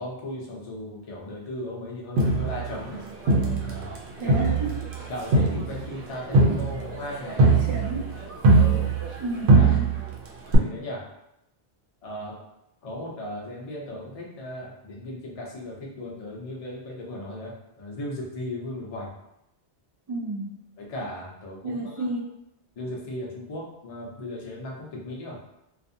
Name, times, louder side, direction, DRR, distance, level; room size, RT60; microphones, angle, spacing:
voice 1, 0.0-3.0 3.4-3.9 4.2-4.4 5.1-7.4 8.5-8.9 9.5-9.8 10.5-11.1 12.0-12.4 12.8-19.1 20.8-22.0 22.8-25.4, left 1 dB, 40° left, -3 dB, 0.6 m, -36 dB
Crowd, 2.2-4.0 4.3-9.2 9.5-10.1 10.5-10.6, right 3 dB, 85° right, 0.9 m, -21 dB
voice 2, 4.2-4.9 6.3-6.6 6.9-7.0 7.4-8.4 9.2-10.0 20.1-20.6 21.6-22.3, right 2 dB, 50° right, -1 dB, 0.4 m, -32 dB
2.6 x 2.4 x 2.6 m, 0.85 s
omnidirectional pair, 1.1 m